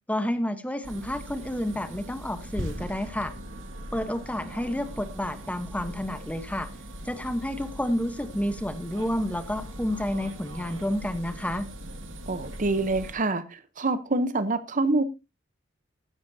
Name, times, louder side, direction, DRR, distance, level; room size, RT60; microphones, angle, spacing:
voice 1, 0.1-3.3 3.9-6.7 7.0-11.7, left 1 dB, 5° left, 1.0 m, -30 dB
sound 1, 0.8-13.1, equal, 85° right, 2.3 m, -40 dB
voice 2, 12.3-15.0, right 2 dB, 40° right, 0.9 m, -26 dB
14.5 x 11.5 x 2.8 m
head